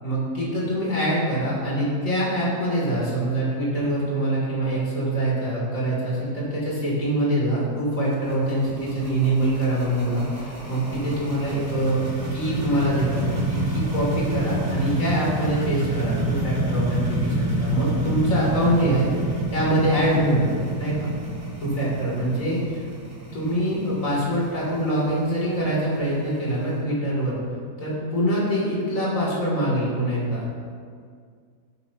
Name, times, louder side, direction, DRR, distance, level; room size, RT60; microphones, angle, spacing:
voice 1, 0.0-12.0 12.3-19.1 19.5-21.1 21.6-22.8 23.3-27.4 27.8-30.5, right 1 dB, 50° left, -6 dB, 3.8 m, -24 dB
sound 1, 7.9-26.7, right 1 dB, 20° right, 1.8 m, -29 dB
16.5 x 8.6 x 3.0 m, 2.1 s
omnidirectional pair, 1.8 m